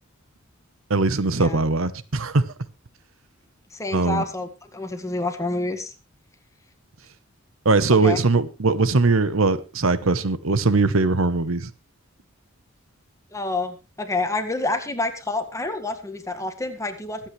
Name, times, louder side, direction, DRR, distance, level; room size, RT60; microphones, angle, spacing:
voice 1, 0.9-2.5 3.9-4.2 7.6-11.7, right 3 dB, 85° right, 1.0 m, -20 dB
voice 2, 3.7-5.9 8.0-8.2 13.3-17.3, left 2 dB, 15° left, 1.8 m, -28 dB
23.0 x 8.8 x 3.3 m
head